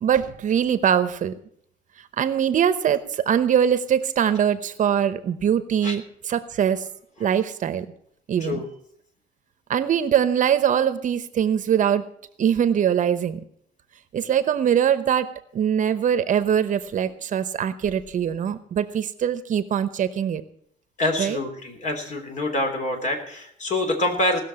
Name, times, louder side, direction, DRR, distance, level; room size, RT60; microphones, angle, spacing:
voice 1, 0.0-1.3 2.2-6.0 6.3-6.8 7.2-7.9 8.3-8.6 9.7-12.0 12.4-13.4 14.1-15.3 15.5-20.4 21.2-21.4, right 9 dB, 50° right, 12 dB, 0.9 m, -22 dB
voice 2, 21.0-24.4, left 1 dB, 45° left, 5 dB, 3.4 m, -26 dB
18.0 x 6.5 x 7.7 m, 0.67 s
cardioid pair, 110°, 17 cm